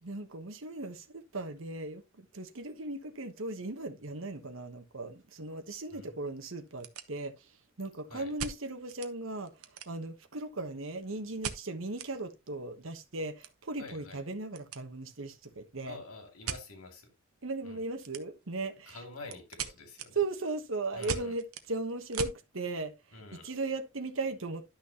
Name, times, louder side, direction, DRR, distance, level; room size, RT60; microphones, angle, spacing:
voice 1, 0.0-16.0 17.4-19.0 20.1-24.6, right 2 dB, 70° right, 1.2 m, -37 dB
sound 1, 4.3-4.5 4.9-5.0 5.6-5.7 5.9-6.0 6.5-7.6 8.4-9.1 9.5-10.2 11.4-12.1 12.5-12.6 12.8-14.8 15.1-15.4 16.4-16.7 18.0-18.5 18.9-22.4, right 7 dB, 90° right, 1.0 m, -40 dB
voice 2, 5.9-6.2 8.1-8.3 13.8-14.2 15.8-17.1 17.6-17.8 18.9-20.2 20.9-21.3 23.1-23.5, left 3 dB, 90° left, 2.6 m, -47 dB
11.5 x 6.2 x 3.0 m
head